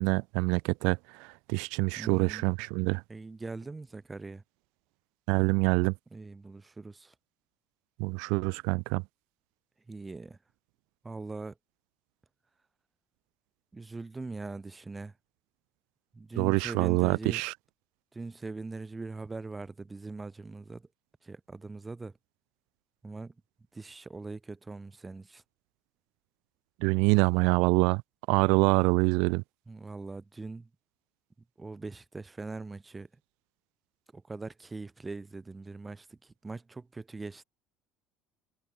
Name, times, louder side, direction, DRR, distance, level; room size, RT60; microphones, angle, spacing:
voice 1, 0.0-3.0 5.3-5.9 8.0-9.0 16.4-17.5 26.8-28.0 28.3-29.4, right 30 dB, 75° right, 0.7 m, -26 dB
voice 2, 2.0-2.5 3.1-4.4 6.1-7.1 9.9-10.4 11.0-11.5 13.7-15.1 16.1-17.4 18.1-20.9 21.2-22.2 23.0-23.3 23.7-25.4 29.7-30.7 31.6-33.1 34.1-37.4, right 3 dB, 10° right, 2.5 m, -41 dB
cardioid pair, 170°, 0 cm